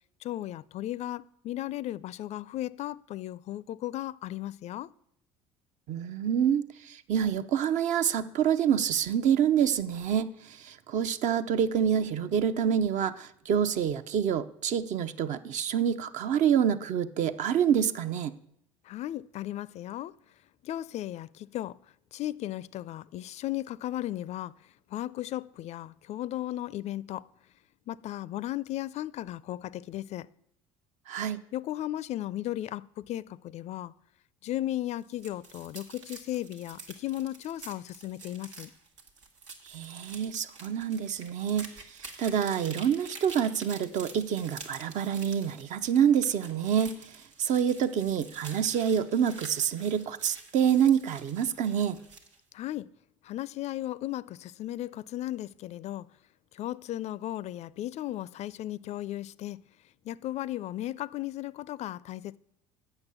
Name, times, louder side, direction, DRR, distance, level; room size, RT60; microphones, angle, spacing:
voice 1, 0.2-4.9 18.8-20.2 20.6-21.8 22.1-24.5 24.9-27.3 27.9-30.3 31.5-33.9 34.4-38.7 52.5-52.9 53.2-56.1 56.5-59.6 60.0-62.4, left 14 dB, 50° left, 0.4 m, -35 dB
voice 2, 5.9-18.3 31.1-31.4 39.6-52.0, right 8 dB, 55° right, 0.6 m, -27 dB
sound 1, 35.0-52.4, right 4 dB, 90° right, 1.3 m, -48 dB
8.1 x 6.5 x 6.9 m
hypercardioid pair, 70°, 15 cm